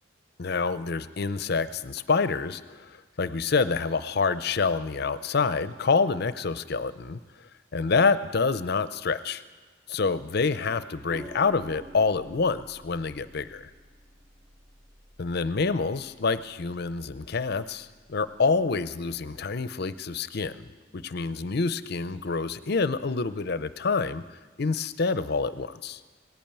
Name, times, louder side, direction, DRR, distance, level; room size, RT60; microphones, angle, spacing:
voice 1, 0.4-7.2 7.7-9.4 9.9-13.7 15.2-20.7 20.9-24.2 24.6-26.0, left 4 dB, 55° left, 14 dB, 0.6 m, -27 dB
sound 1, 11.1-19.6, equal, 15° right, 0.7 m, -50 dB
18.5 x 8.7 x 8.9 m, 1.3 s
head